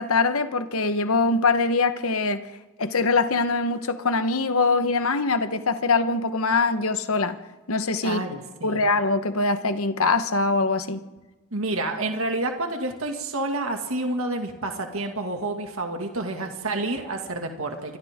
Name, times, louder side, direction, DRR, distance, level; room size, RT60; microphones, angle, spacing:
voice 1, 0.0-2.4 2.8-7.4 7.7-8.2 8.6-11.0, left 3 dB, 70° left, 10 dB, 1.3 m, -23 dB
voice 2, 8.0-8.8 11.5-18.0, right 2 dB, 65° right, 3 dB, 2.2 m, -29 dB
28.5 x 24.5 x 3.7 m, 1.2 s
head